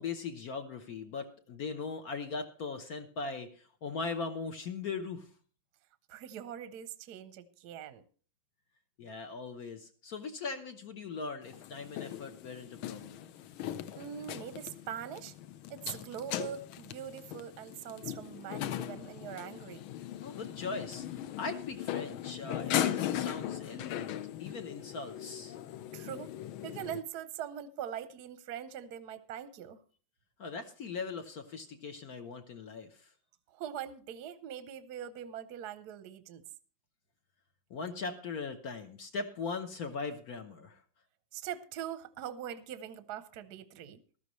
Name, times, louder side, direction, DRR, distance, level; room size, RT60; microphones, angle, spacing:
voice 1, 0.0-5.3 9.0-13.2 20.2-25.6 30.4-33.1 37.7-40.8, left 4 dB, 55° left, 1.1 m, -40 dB
voice 2, 6.1-8.0 14.0-15.3 15.7-19.9 25.9-26.3 26.6-29.8 33.5-36.4 41.3-44.0, right 9 dB, 65° right, 1.1 m, -42 dB
sound 1, 11.4-27.0, left 11 dB, 75° left, 1.5 m, -39 dB
15.0 x 12.5 x 3.1 m
omnidirectional pair, 2.4 m